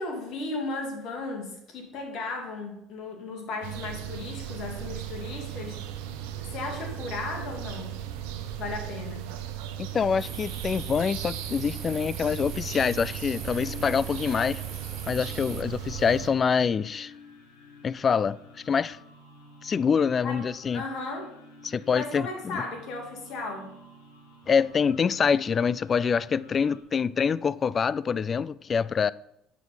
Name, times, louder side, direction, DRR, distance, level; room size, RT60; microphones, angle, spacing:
voice 1, 0.0-5.8 6.4-8.0 8.6-9.3 20.2-20.5 20.7-21.3 21.7-23.7, left 3 dB, 60° left, 2.4 m, -35 dB
sound 1, 3.6-16.3, right 11 dB, 80° right, 0.8 m, -37 dB
voice 2, 9.9-14.6 15.1-17.1 17.8-18.4 18.7-19.0 19.6-20.8 21.6-22.3 22.5-22.6 24.5-29.1, left 6 dB, 40° left, 0.3 m, -25 dB
sound 2, 10.2-15.6, right 6 dB, 35° right, 0.3 m, -42 dB
sound 3, 12.6-26.8, left 2 dB, 85° left, 1.6 m, -51 dB
8.2 x 6.1 x 5.5 m
hypercardioid pair, 70°, 0 cm